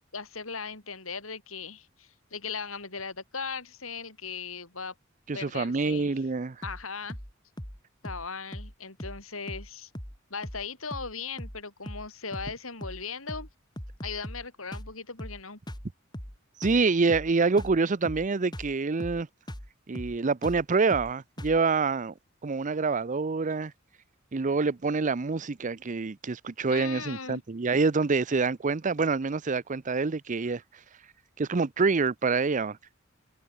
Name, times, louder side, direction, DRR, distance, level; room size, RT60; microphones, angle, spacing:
voice 1, 0.1-4.9 5.3-6.1 6.6-7.2 8.0-9.9 10.3-13.5 14.0-15.6 26.7-27.4, left 5 dB, 90° left, 6.1 m, -38 dB
voice 2, 5.3-6.6 16.6-19.3 19.9-22.1 22.4-23.7 24.3-30.6 31.4-32.8, right 4 dB, 40° right, 0.6 m, -26 dB
sound 1, 6.6-6.8 7.1-7.3 7.6-7.8 8.0-8.3 8.5-8.7 9.0-9.2 9.5-9.7 9.9-10.2 10.4-10.6 10.9-11.1 11.4-11.6 11.9-12.1 12.3-12.5 12.8-13.0 13.3-13.5 13.8-14.5 14.7-14.9 15.2-15.4 15.7-15.9 16.1-16.4 16.6-16.8 17.1-17.3 17.6-17.8 18.0-18.3 18.5-18.7 19.0-19.2 19.5-19.7 19.9-20.2 20.4-20.6 20.9-21.1 21.4-21.6, equal, 20° left, 5.4 m, -40 dB
head